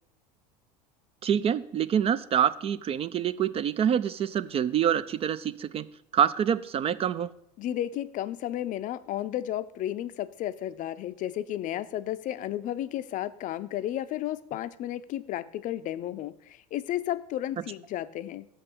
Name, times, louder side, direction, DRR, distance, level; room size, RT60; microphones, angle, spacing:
voice 1, 1.2-5.8 6.1-7.3, right 9 dB, 30° right, 15 dB, 0.4 m, -26 dB
voice 2, 7.6-18.5, left 12 dB, 40° left, 14 dB, 0.5 m, -33 dB
7.0 x 5.4 x 6.8 m, 0.72 s
figure-of-eight pair, 75°, 21 cm